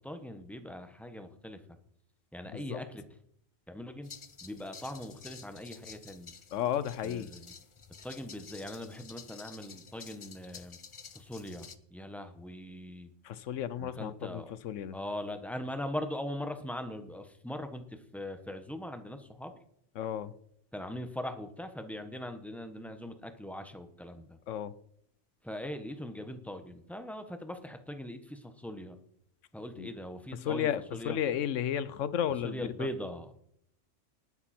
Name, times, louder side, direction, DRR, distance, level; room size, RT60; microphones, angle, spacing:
voice 1, 0.0-1.6 2.3-3.2 3.7-4.1 4.4-6.3 7.0-7.5 8.0-10.8 11.1-13.1 13.8-14.5 14.9-19.5 20.7-24.4 25.4-29.0 29.5-31.2 32.4-33.4, left 1 dB, ahead, 1.2 m, -41 dB
voice 2, 2.5-2.8 6.5-7.3 13.2-15.0 20.0-20.3 24.5-24.7 29.8-29.9 30.4-32.9, left 10 dB, 85° left, 1.1 m, -33 dB
sound 1, 4.0-11.8, left 5 dB, 35° left, 0.5 m, -51 dB
19.5 x 9.7 x 4.4 m
omnidirectional pair, 1.3 m